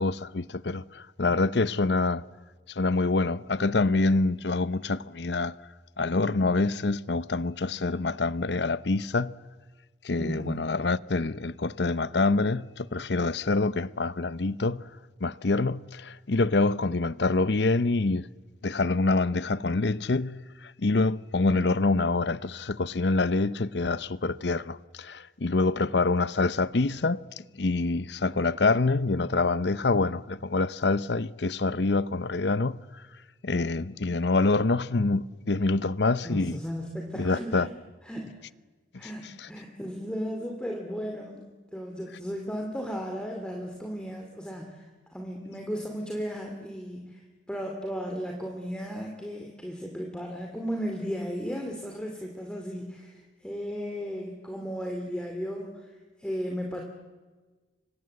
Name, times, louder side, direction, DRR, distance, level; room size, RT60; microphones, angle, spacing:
voice 1, 0.0-2.2 2.7-5.6 6.0-9.3 10.0-14.8 15.2-18.3 18.6-32.8 33.4-36.6 37.2-37.7 39.4-39.5, left 3 dB, 70° left, 0.8 m, -26 dB
voice 2, 10.2-10.7 36.2-37.7 38.0-38.3 39.0-47.2 47.5-55.9 56.2-56.8, equal, 5° left, 2.5 m, -35 dB
30.0 x 25.0 x 7.8 m
head